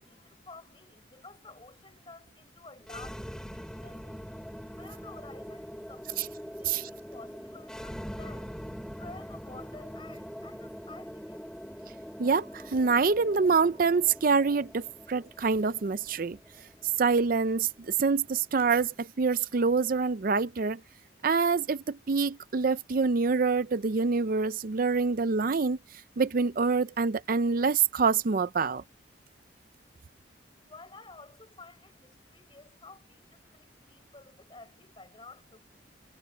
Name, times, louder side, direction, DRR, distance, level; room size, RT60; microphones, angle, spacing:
voice 1, 0.0-4.3 4.7-8.6 9.0-11.5 30.7-35.6, left 3 dB, 25° left, 4.8 m, -51 dB
sound 1, 2.8-18.9, equal, 5° left, 3.6 m, -44 dB
voice 2, 12.2-16.4 17.0-20.8 21.2-25.8 26.2-28.8, right 4 dB, 45° right, 0.5 m, -26 dB
head